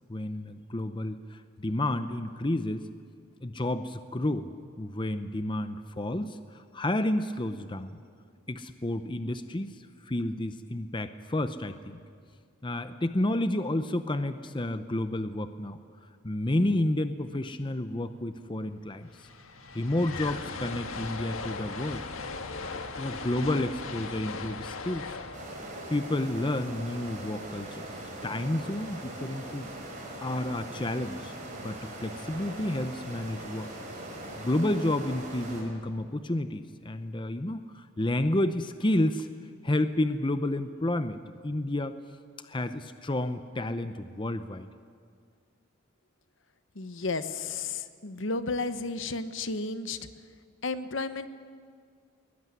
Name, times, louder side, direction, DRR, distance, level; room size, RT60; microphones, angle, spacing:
voice 1, 0.1-2.9 3.4-4.5 4.8-8.0 8.5-12.0 12.6-15.8 16.2-19.1 19.7-22.1 23.0-25.1 25.9-27.9 28.2-33.7 34.4-39.3 39.6-42.0 42.4-44.7, left 1 dB, 25° left, 10 dB, 0.7 m, -30 dB
sound 1, 18.6-18.7 18.9-27.1, left 4 dB, 80° left, 1.7 m, -39 dB
sound 2, 25.3-35.6, right 1 dB, 35° right, 6.2 m, -41 dB
voice 2, 46.8-50.0 50.6-51.3, left 3 dB, 65° left, 11 dB, 1.1 m, -32 dB
21.5 x 20.0 x 9.7 m, 2.1 s
head